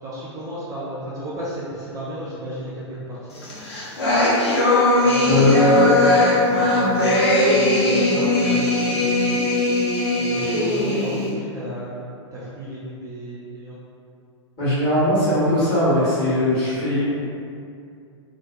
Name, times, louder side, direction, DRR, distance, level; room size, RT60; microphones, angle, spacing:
voice 1, 0.0-3.6 4.9-9.3 10.1-13.8, equal, 20° right, -8 dB, 0.4 m, -34 dB
sound 1, 3.4-11.3, left 1 dB, 60° left, 0.6 m, -19 dB
voice 2, 5.2-5.9 14.6-17.0, left 1 dB, 35° left, -12 dB, 1.4 m, -19 dB
2.7 x 2.1 x 2.4 m, 2.5 s
figure-of-eight pair, 95°, 15 cm